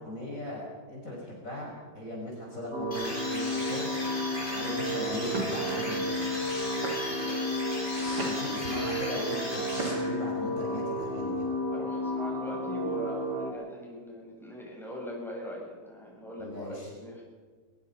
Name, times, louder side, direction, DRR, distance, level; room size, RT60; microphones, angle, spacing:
voice 1, 0.0-3.9 4.5-6.3 8.2-11.5 16.4-16.9, equal, 50° left, -2 dB, 5.7 m, -38 dB
sound 1, 2.7-13.5, left 1 dB, 35° right, 3.6 m, -32 dB
sound 2, 2.9-10.4, left 1 dB, 30° left, 6.0 m, -37 dB
sound 3, 4.5-4.7 5.3-5.7 6.4-6.5 6.8-7.3 7.8-8.6 9.7-10.3, right 2 dB, 70° right, 4.3 m, -37 dB
voice 2, 7.0-7.5 11.7-17.2, equal, ahead, -4 dB, 7.6 m, -41 dB
22.0 x 21.5 x 5.5 m, 1.4 s
omnidirectional pair, 1.8 m